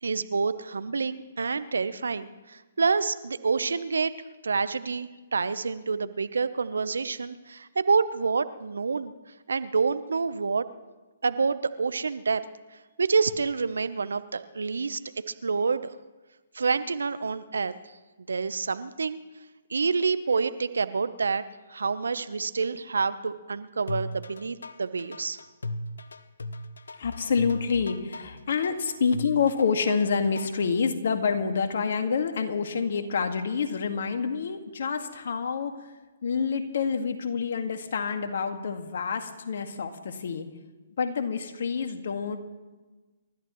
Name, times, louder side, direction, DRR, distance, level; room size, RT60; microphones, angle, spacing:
voice 1, 0.0-4.1 4.4-10.7 11.2-12.4 12.7-15.0 15.3-15.9 16.5-17.9 18.3-19.2 19.7-21.4 21.7-25.4, right 4 dB, 75° right, 13 dB, 0.9 m, -28 dB
sound 1, 23.9-30.7, left 1 dB, 80° left, 1.0 m, -37 dB
voice 2, 27.0-35.9 36.2-40.5 41.0-42.4, left 5 dB, 60° left, 6 dB, 1.9 m, -27 dB
28.5 x 14.0 x 3.2 m, 1.2 s
figure-of-eight pair, 130°, 0 cm